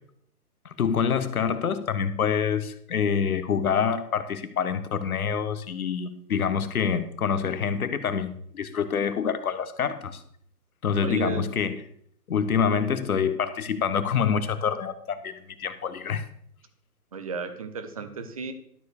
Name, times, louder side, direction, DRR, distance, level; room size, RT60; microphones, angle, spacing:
voice 1, 0.6-10.2 10.8-11.8 12.3-16.2, left 7 dB, 65° left, 12 dB, 1.2 m, -26 dB
voice 2, 11.0-11.5 17.1-18.5, right 5 dB, 25° right, 9 dB, 0.6 m, -33 dB
12.0 x 4.8 x 6.5 m, 0.66 s
hypercardioid pair, 145°, 47 cm